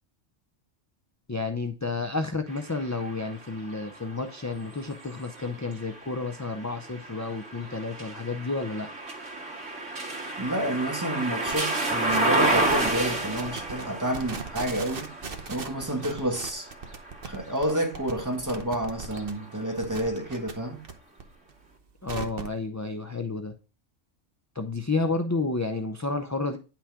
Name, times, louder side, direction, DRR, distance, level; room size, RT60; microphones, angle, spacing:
voice 1, 1.3-8.9 22.0-23.5 24.6-26.6, left 3 dB, 25° left, 0.4 m, -31 dB
sound 1, 2.5-18.4 19.0-20.2, right 2 dB, 80° right, 2.3 m, -32 dB
voice 2, 10.4-15.1 15.5-16.7 17.3-20.8, right 1 dB, 15° right, 1.8 m, -29 dB
sound 2, 11.5-11.6 12.0-12.4 12.7-13.0 13.4-13.8 14.1-19.3 19.6-20.9 21.2-22.6, right 5 dB, 50° right, 1.2 m, -38 dB
9.8 x 6.0 x 3.6 m
omnidirectional pair, 1.2 m